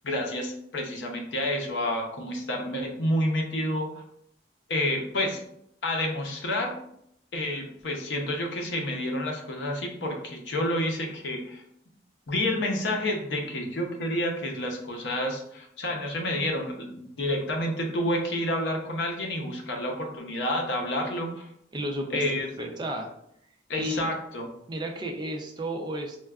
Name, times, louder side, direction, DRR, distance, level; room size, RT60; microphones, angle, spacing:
voice 1, 0.0-4.0 4.7-5.4 5.8-6.8 7.3-11.6 12.3-21.5 22.1-22.5 23.7-24.5, left 1 dB, 85° left, 2 dB, 0.7 m, -29 dB
voice 2, 21.7-22.2 22.6-23.1 23.7-24.0 24.7-26.2, right 1 dB, 25° right, 2 dB, 0.4 m, -32 dB
4.3 x 2.2 x 2.3 m, 0.72 s
head